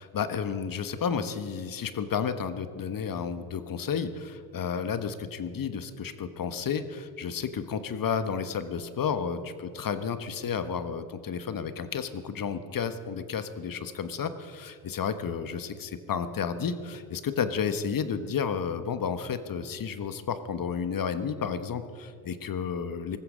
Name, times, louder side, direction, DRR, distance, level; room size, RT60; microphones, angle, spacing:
voice 1, 0.1-23.2, left 6 dB, 45° left, 10 dB, 1.4 m, -32 dB
19.0 x 14.5 x 5.1 m, 2.2 s
hypercardioid pair, 55°, 46 cm